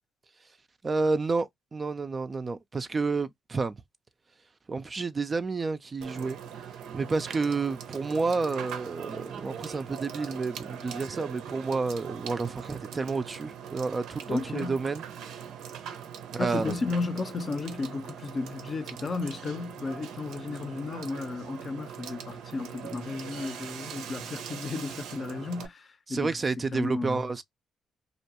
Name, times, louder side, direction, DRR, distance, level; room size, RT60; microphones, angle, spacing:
voice 1, 0.8-3.7 4.7-6.4 6.9-15.0 16.3-16.8 26.1-27.4, right 4 dB, 30° right, 0.4 m, -30 dB
Water / Water tap faucet / Sink (filling or washing), 6.0-25.7, right 8 dB, 85° right, 0.6 m, -41 dB
voice 2, 14.3-14.8 16.4-26.3 26.7-27.3, left 3 dB, 40° left, 0.6 m, -33 dB
2.5 x 2.2 x 2.8 m
cardioid pair, 90°, 0 cm